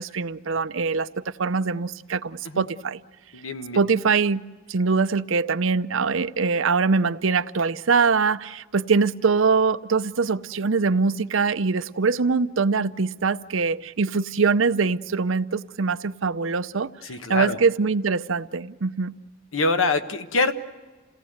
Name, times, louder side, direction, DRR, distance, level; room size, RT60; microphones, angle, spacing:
voice 1, 0.0-3.0 3.7-4.4 4.7-16.9 17.3-19.1, right 4 dB, 75° right, 0.7 m, -23 dB
voice 2, 3.3-3.8 17.0-17.6 19.5-20.5, left 3 dB, 85° left, 1.4 m, -24 dB
28.5 x 18.0 x 8.0 m
head